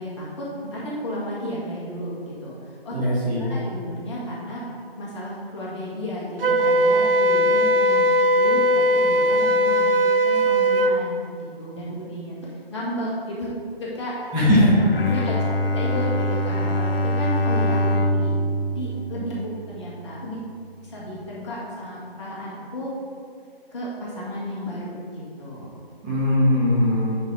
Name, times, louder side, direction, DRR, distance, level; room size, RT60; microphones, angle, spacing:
voice 1, 0.0-3.0 3.4-4.6 5.0-9.9 10.2-12.4 12.7-13.5 13.8-14.6 15.1-15.4 15.7-18.4 18.7-20.4 20.8-22.9 23.7-25.7, left 1 dB, 30° left, -7 dB, 1.8 m, -33 dB
voice 2, 2.9-3.5 14.3-15.2 26.0-27.2, left 1 dB, 10° right, -12 dB, 1.6 m, -20 dB
Wind instrument woodwind instrument, 6.4-11.0, equal, 65° right, 0.6 m, -19 dB
Bowed string instrument, 14.7-20.0, equal, 65° left, 0.8 m, -24 dB
9.5 x 4.0 x 4.9 m, 2.3 s
figure-of-eight pair, 155°, 31 cm